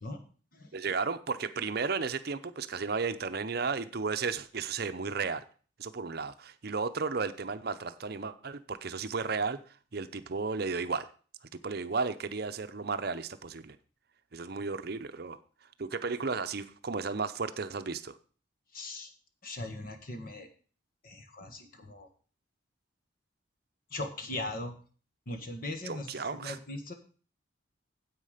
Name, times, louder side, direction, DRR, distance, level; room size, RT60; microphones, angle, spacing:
voice 1, 0.7-5.4 5.8-11.1 11.6-13.8 14.3-15.4 15.8-18.2 25.8-26.6, right 4 dB, 55° right, 10 dB, 0.7 m, -34 dB
voice 2, 18.7-19.1 19.4-20.5 21.0-22.1 23.9-24.7 25.3-26.9, left 2 dB, 50° left, 6 dB, 1.6 m, -39 dB
9.7 x 8.2 x 5.0 m, 0.40 s
head